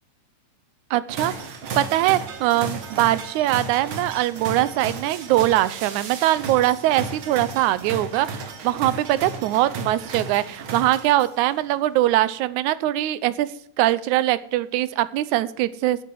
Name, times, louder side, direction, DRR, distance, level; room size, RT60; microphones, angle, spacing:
voice 1, 0.9-13.5 13.8-16.0, right 15 dB, 85° right, 16 dB, 2.1 m, -22 dB
sound 1, 1.1-11.5, right 3 dB, 50° right, 2.0 m, -34 dB
9.6 x 8.7 x 7.7 m, 0.65 s
omnidirectional pair, 3.4 m